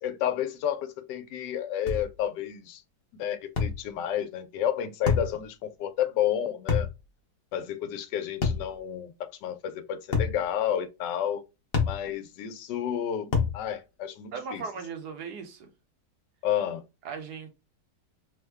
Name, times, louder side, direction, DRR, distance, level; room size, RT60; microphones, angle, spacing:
voice 1, 0.0-2.8 3.2-6.9 7.5-11.4 11.8-14.6 16.4-16.8, left 10 dB, 80° left, 1.2 m, -31 dB
sound 1, 1.9-2.1 3.6-3.8 5.1-5.3 6.7-6.9 8.4-8.7 10.1-10.4 11.7-12.0 13.3-13.6, left 5 dB, 45° left, 0.7 m, -25 dB
voice 2, 14.3-15.7 17.0-17.5, right 5 dB, 70° right, 1.2 m, -37 dB
3.3 x 2.1 x 3.3 m
omnidirectional pair, 1.9 m